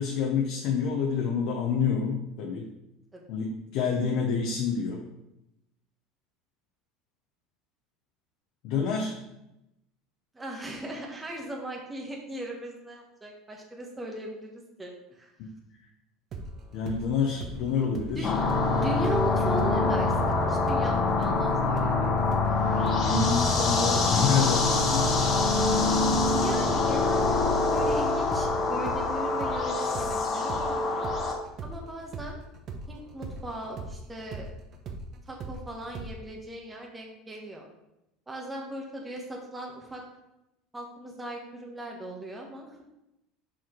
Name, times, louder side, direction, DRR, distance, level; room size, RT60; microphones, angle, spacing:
voice 1, 0.0-2.7 3.3-5.0 8.6-9.2 15.4-15.5 16.7-18.3 22.9-25.0, left 6 dB, 65° left, 0 dB, 1.0 m, -28 dB
voice 2, 10.3-14.5 14.8-15.3 18.1-18.3 18.7-22.1 26.3-31.1 31.6-32.4 32.9-34.5 35.3-37.7 38.3-40.0 40.7-42.8, right 1 dB, 15° right, 0 dB, 1.2 m, -38 dB
sound 1, 16.3-19.8 20.1-28.0 28.3-36.1, right 3 dB, 45° right, 0.9 m, -39 dB
sound 2, 18.2-31.3, left 3 dB, 40° left, 1.3 m, -25 dB
5.7 x 5.0 x 4.5 m, 0.91 s
supercardioid pair, 100°, 0 cm